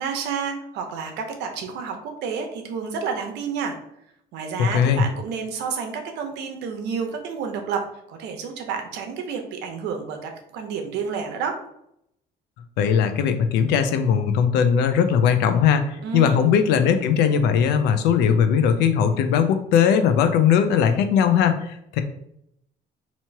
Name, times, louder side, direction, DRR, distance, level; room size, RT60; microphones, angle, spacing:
voice 1, 0.0-3.8 4.3-11.6 16.0-16.4, right 6 dB, 90° right, 4 dB, 0.8 m, -30 dB
voice 2, 4.6-5.0 12.8-22.0, left 7 dB, 90° left, 8 dB, 0.5 m, -19 dB
3.0 x 2.8 x 4.5 m, 0.75 s
cardioid pair, 110°, 17 cm